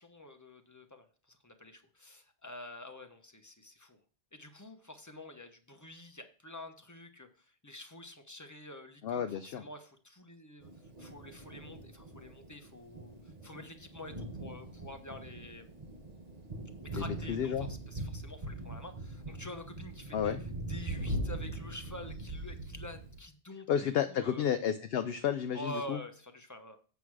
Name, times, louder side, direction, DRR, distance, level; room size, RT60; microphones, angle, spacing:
voice 1, 0.0-4.0 4.3-10.7 11.0-15.7 16.8-24.5 25.5-26.8, left 1 dB, 15° left, 5 dB, 0.9 m, -48 dB
voice 2, 9.0-9.6 16.9-17.7 20.1-20.4 23.7-26.0, left 8 dB, 65° left, 9 dB, 0.8 m, -32 dB
Thunder, 10.6-23.2, right 1 dB, 35° right, 1.2 m, -41 dB
8.3 x 5.9 x 4.8 m, 0.40 s
omnidirectional pair, 1.2 m